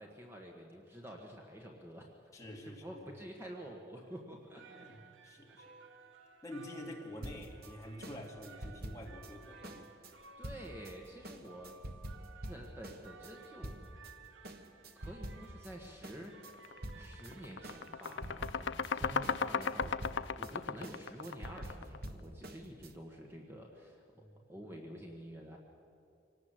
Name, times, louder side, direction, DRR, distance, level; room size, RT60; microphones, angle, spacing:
voice 1, 0.0-2.1 2.8-4.6 5.5-5.6 10.4-11.8 12.5-13.7 14.9-24.0 24.5-25.6, equal, 15° right, 0 dB, 1.5 m, -49 dB
voice 2, 2.3-3.2 4.0-4.1 4.7-5.7 6.4-9.9 24.1-24.5, left 1 dB, 20° left, -1 dB, 2.5 m, -48 dB
sound 1, 4.3-20.2, right 5 dB, 90° right, 1.3 m, -58 dB
sound 2, 7.2-14.1 14.4-15.7 16.0-22.9, right 1 dB, 55° right, 1.3 m, -47 dB
sound 3, 16.6-16.8 17.1-22.1, left 6 dB, 75° left, 0.5 m, -36 dB
25.0 x 18.5 x 7.7 m, 2.5 s
head